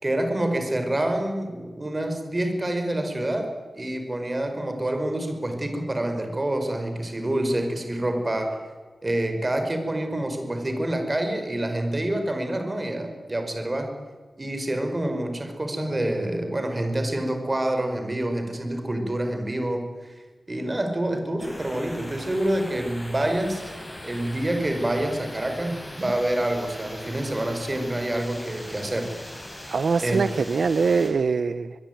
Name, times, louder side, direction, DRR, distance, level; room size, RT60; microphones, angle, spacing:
voice 1, 0.0-8.6 9.0-13.9 14.4-19.9 20.5-23.7 24.0-29.1 30.0-30.2, right 1 dB, 25° right, 6 dB, 5.3 m, -27 dB
sound 1, 21.4-31.1, left 1 dB, 15° left, 7.9 m, -40 dB
voice 2, 29.7-31.8, right 5 dB, 75° right, 12 dB, 0.9 m, -23 dB
24.5 x 22.0 x 9.5 m, 1.4 s
wide cardioid pair, 125°, 0 cm